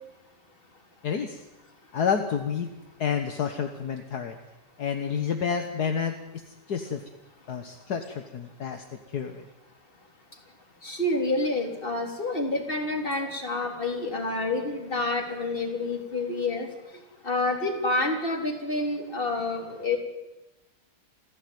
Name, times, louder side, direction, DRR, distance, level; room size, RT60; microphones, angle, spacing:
voice 1, 1.0-1.4 1.9-2.7 3.0-4.4 4.8-6.1 6.7-7.0 7.5-8.8 9.1-9.4, left 7 dB, 65° left, 6 dB, 1.9 m, -29 dB
voice 2, 10.8-16.7 17.2-20.0, left 2 dB, 30° left, 3 dB, 3.9 m, -28 dB
28.0 x 15.5 x 9.5 m, 1.0 s
omnidirectional pair, 1.9 m